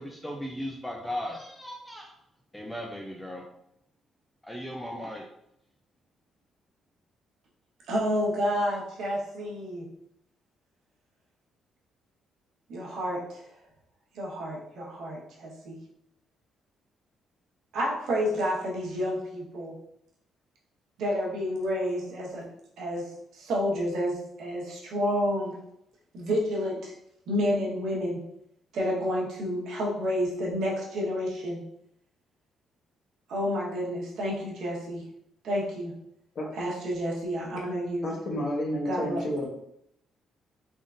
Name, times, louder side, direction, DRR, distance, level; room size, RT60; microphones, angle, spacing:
voice 1, 0.0-2.1 2.5-3.4 4.4-5.3, equal, 5° left, 0 dB, 0.3 m, -37 dB
voice 2, 7.9-9.9 12.7-13.4 14.1-15.8 17.7-19.7 21.0-22.5 22.8-25.5 26.1-26.9 27.3-28.2 28.7-31.6 33.3-35.0 35.4-35.9 36.6-38.1 38.8-39.2, equal, 70° right, -4 dB, 1.1 m, -30 dB
voice 3, 38.0-39.5, left 1 dB, 40° left, -1 dB, 0.9 m, -30 dB
3.7 x 3.6 x 2.5 m, 0.77 s
cardioid pair, 175°, 0 cm